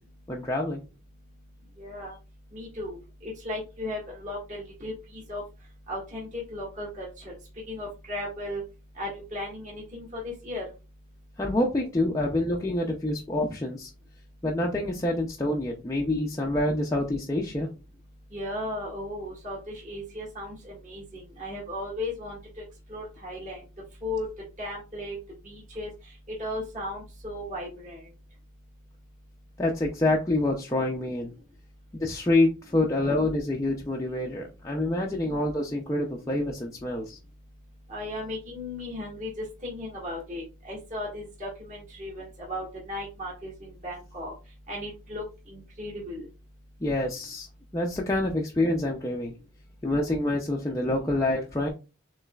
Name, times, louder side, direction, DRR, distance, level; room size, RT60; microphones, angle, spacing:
voice 1, 0.3-0.8 11.4-13.9 14.4-17.7 29.6-31.3 32.0-37.2 46.8-47.5 47.7-49.3 49.8-51.7, left 1 dB, 15° left, -1 dB, 0.5 m, -27 dB
voice 2, 1.8-2.1 2.5-5.4 5.9-7.3 7.7-8.6 9.0-10.7 18.3-22.6 22.9-23.6 24.0-24.3 24.6-25.2 25.4-25.9 26.4-28.0 37.9-44.3 44.7-46.3, left 1 dB, 35° right, -3 dB, 1.9 m, -36 dB
6.8 x 3.2 x 2.3 m, 0.30 s
head